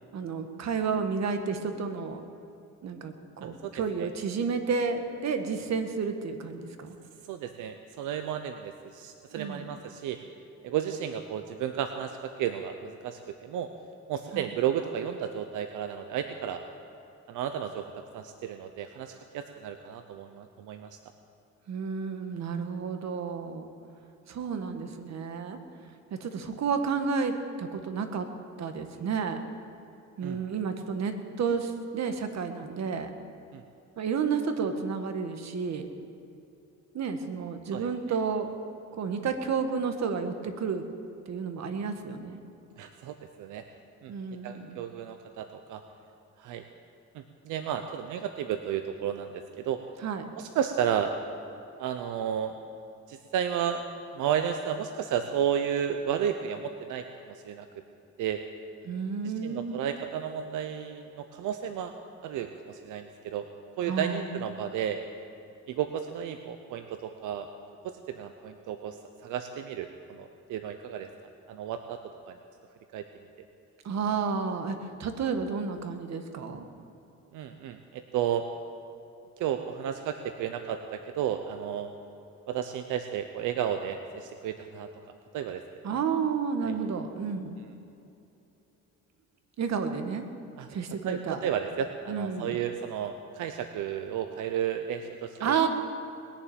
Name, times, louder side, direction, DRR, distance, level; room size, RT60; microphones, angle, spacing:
voice 1, 0.1-2.2 2.8-6.9 9.3-9.7 14.3-14.5 21.7-23.7 24.3-25.6 26.1-28.3 28.6-29.4 30.2-33.1 34.0-35.9 36.9-38.5 39.0-40.8 41.3-42.4 44.1-44.8 50.0-50.3 58.8-59.9 63.9-64.4 73.8-76.7 85.8-87.6 89.6-90.3 90.7-91.4 92.1-92.6 95.4-95.7, right 5 dB, 60° right, 6 dB, 1.6 m, -31 dB
voice 2, 3.4-4.1 7.3-10.2 10.6-13.7 14.1-16.6 17.3-21.0 30.2-30.4 33.5-33.6 37.7-37.9 42.8-43.6 44.0-44.1 44.4-45.8 46.4-46.6 47.1-49.8 50.4-51.2 51.8-52.5 53.1-53.9 54.1-57.7 58.2-58.4 59.2-62.0 62.2-63.4 63.8-65.0 65.7-67.5 67.8-69.0 69.2-71.1 71.5-72.0 72.3-72.4 72.9-73.0 77.3-78.4 79.4-81.9 82.5-84.9 85.3-85.6 86.6-86.7 90.6-90.8 91.0-95.6, right 9 dB, 90° right, 7 dB, 0.8 m, -33 dB
20.5 x 7.3 x 8.9 m, 2.8 s
cardioid pair, 90°, 30 cm